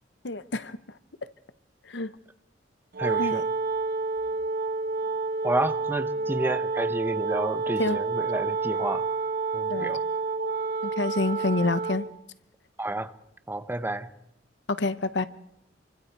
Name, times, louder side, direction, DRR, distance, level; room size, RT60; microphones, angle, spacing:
voice 1, 0.2-0.8 1.8-2.1 3.2-3.4 7.8-8.0 9.7-10.0 10.8-12.0 14.7-15.3, left 2 dB, 70° left, 0.9 m, -27 dB
Wind instrument woodwind instrument, 2.9-12.2, right 4 dB, 55° right, 0.8 m, -29 dB
voice 2, 3.0-3.4 5.4-9.1 9.5-10.0 12.8-13.1 13.5-14.1, right 1 dB, 10° right, 0.8 m, -30 dB
27.5 x 24.5 x 4.7 m
head